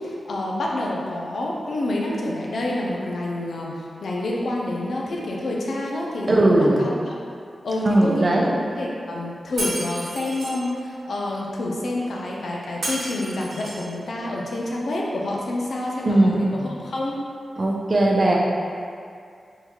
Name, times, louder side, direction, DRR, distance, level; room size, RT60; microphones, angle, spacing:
voice 1, 0.0-7.1 7.6-8.5 8.8-16.3 16.6-17.2, left 1 dB, 80° left, -2 dB, 0.4 m, -28 dB
voice 2, 6.3-6.8 7.9-8.5 16.0-16.7 17.6-18.4, right 1 dB, 45° right, -2 dB, 0.5 m, -19 dB
Shatter, 9.6-10.6 12.8-13.9, right 1 dB, 75° right, 1.0 m, -31 dB
3.6 x 2.3 x 2.9 m, 2.3 s
cardioid pair, 70°, 0 cm